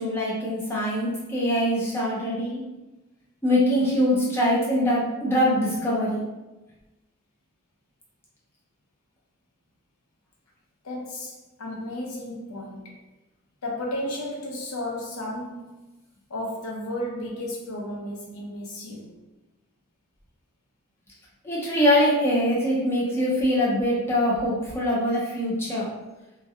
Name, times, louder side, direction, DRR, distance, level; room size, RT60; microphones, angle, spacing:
voice 1, 0.0-2.6 3.4-6.2 21.4-25.8, equal, 10° left, -7 dB, 0.6 m, -23 dB
voice 2, 10.8-13.0 13.6-15.8 16.3-19.2, left 1 dB, 75° left, -2 dB, 0.6 m, -33 dB
2.3 x 2.1 x 2.8 m, 1.1 s
head